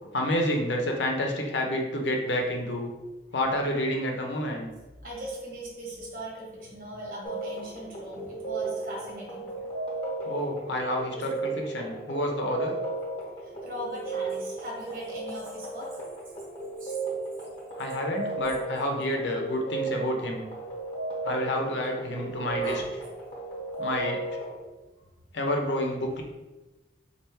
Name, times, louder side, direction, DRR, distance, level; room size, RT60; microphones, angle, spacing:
voice 1, 0.0-2.9 3.3-4.7 10.2-12.8 17.8-20.4 21.2-22.8 23.8-24.2 25.3-26.2, left 1 dB, 85° left, 1 dB, 0.7 m, -29 dB
voice 2, 5.0-9.5 13.4-16.0 16.8-17.0 19.9-20.3 22.6-22.9, equal, 50° right, -3 dB, 1.2 m, -39 dB
sound 1, 7.2-24.6, right 3 dB, 30° left, 0.9 m, -35 dB
4.3 x 2.4 x 3.4 m, 1.1 s
head